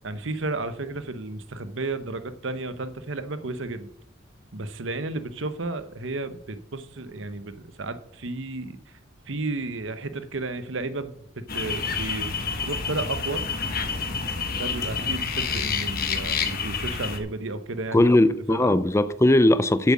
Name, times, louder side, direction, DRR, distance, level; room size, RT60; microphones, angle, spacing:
voice 1, 0.0-3.9 4.5-8.8 9.3-13.4 14.6-18.2 18.5-18.8, right 2 dB, 70° right, 0.9 m, -33 dB
sound 1, 11.5-17.2, left 5 dB, 45° left, 1.3 m, -28 dB
voice 2, 17.9-19.9, left 1 dB, 15° left, 0.4 m, -19 dB
7.8 x 7.2 x 7.4 m
head